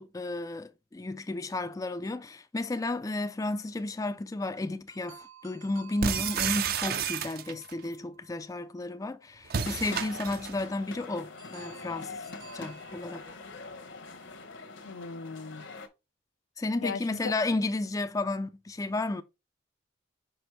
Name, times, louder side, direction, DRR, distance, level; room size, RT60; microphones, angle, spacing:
voice 1, 0.0-12.1 12.5-13.2 16.6-19.2, left 2 dB, 15° left, 0.3 m, -33 dB
sound 1, 4.9-9.0 11.4-13.7, right 6 dB, 75° right, 2.1 m, -53 dB
sound 2, 6.0-7.7 9.5-10.6, right 7 dB, 45° right, 0.5 m, -31 dB
sound 3, 9.6-15.9, left 3 dB, 65° left, 0.9 m, -44 dB
voice 2, 14.8-15.7 16.8-17.3, left 5 dB, 80° left, 0.5 m, -38 dB
5.9 x 5.2 x 3.2 m
head